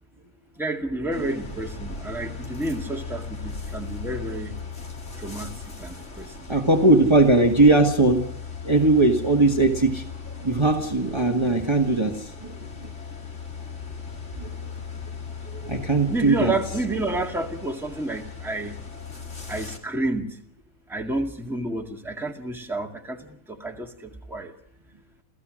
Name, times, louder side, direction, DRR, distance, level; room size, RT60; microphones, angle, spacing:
voice 1, 0.6-4.5 5.2-5.5 5.8-6.6 7.0-7.2 16.1-18.7 19.5-20.4 20.9-24.5, right 2 dB, ahead, 2.0 m, -30 dB
sound 1, 1.1-19.8, left 5 dB, 55° left, 2.8 m, -38 dB
voice 2, 6.5-8.3 8.6-10.0 10.4-12.5 14.4-14.5 15.5-16.5, right 2 dB, 20° right, 1.7 m, -19 dB
28.5 x 15.5 x 6.4 m
omnidirectional pair, 1.5 m